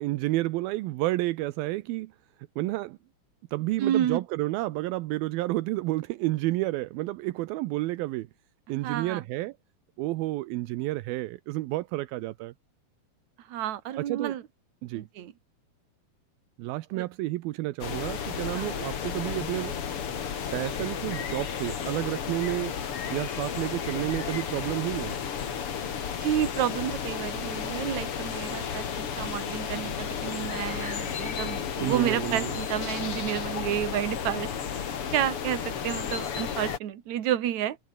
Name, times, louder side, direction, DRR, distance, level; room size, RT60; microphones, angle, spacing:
voice 1, 0.0-2.1 2.6-3.0 3.5-8.3 8.7-9.6 10.0-12.5 14.0-14.4 14.8-15.1 16.6-19.7 20.5-22.8 23.1-25.2 31.8-32.5, right 18 dB, 80° right, 2.5 m, -30 dB
voice 2, 3.8-4.2 8.8-9.2 13.5-14.4 14.9-15.3 16.9-17.1 18.5-18.9 26.2-37.8, right 11 dB, 55° right, 2.8 m, -30 dB
sound 1, 17.8-36.8, left 7 dB, 45° left, 2.4 m, -33 dB
omnidirectional pair, 4.3 m